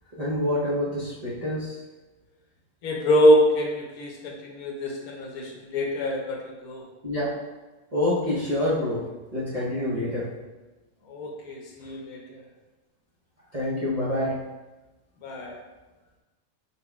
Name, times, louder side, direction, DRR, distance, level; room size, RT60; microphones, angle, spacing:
voice 1, 0.2-1.8 7.0-7.3 7.9-9.0 9.3-10.3 13.5-14.4, left 1 dB, 35° right, -9 dB, 0.7 m, -26 dB
voice 2, 2.8-6.8 11.1-12.4 15.2-15.6, equal, 85° left, 1 dB, 1.2 m, -24 dB
5.0 x 4.1 x 2.3 m, 1.1 s
omnidirectional pair, 1.5 m